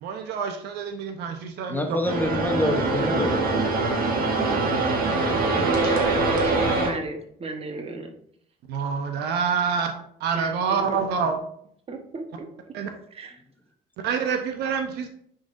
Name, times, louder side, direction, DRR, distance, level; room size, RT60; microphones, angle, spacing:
voice 1, 0.0-2.0 5.3-5.8 8.7-9.9 10.2-11.4 12.7-12.9 14.0-15.1, right 6 dB, 80° right, 5 dB, 0.7 m, -27 dB
voice 2, 1.7-3.4 4.4-5.5, left 1 dB, 10° left, 4 dB, 0.8 m, -28 dB
sound 1, 2.0-6.9, right 3 dB, 60° right, 1.6 m, -23 dB
voice 3, 5.3-8.1 10.3-11.1 11.9-12.5 13.1-13.3, right 3 dB, 35° right, 4 dB, 1.1 m, -37 dB
10.0 x 3.8 x 2.6 m, 0.66 s
cardioid pair, 110°, 17 cm